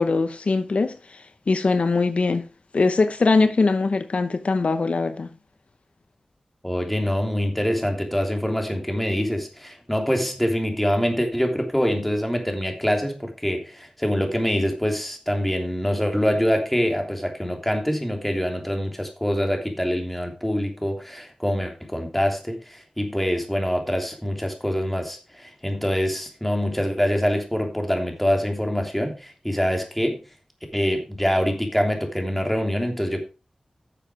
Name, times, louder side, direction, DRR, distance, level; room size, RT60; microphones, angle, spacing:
voice 1, 0.0-2.4 2.7-5.3, left 3 dB, 75° left, 0.9 m, -22 dB
voice 2, 6.6-30.2 30.7-33.2, equal, 5° left, 3.1 m, -25 dB
11.0 x 7.0 x 4.9 m
wide cardioid pair, 60°, 2 cm